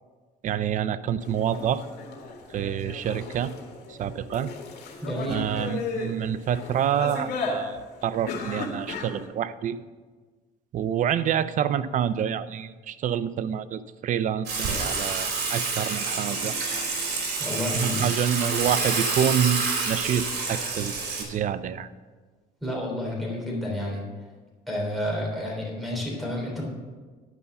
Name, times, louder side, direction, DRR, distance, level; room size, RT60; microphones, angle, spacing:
voice 1, 0.4-1.8 2.5-3.5 3.9-4.5 5.3-9.8 10.7-16.5 17.7-21.9, right 9 dB, 50° right, 15 dB, 0.5 m, -27 dB
sound 1, 1.2-9.3, left 4 dB, 75° left, 2.1 m, -35 dB
voice 2, 5.0-5.5 17.4-18.0 22.6-24.0 24.7-26.6, left 1 dB, ahead, -3 dB, 3.3 m, -30 dB
Water / Water tap faucet / Sink (filling or washing), 14.5-21.2, right 4 dB, 70° right, 3.1 m, -28 dB
11.0 x 5.5 x 6.8 m, 1.4 s
cardioid pair, 110°, 17 cm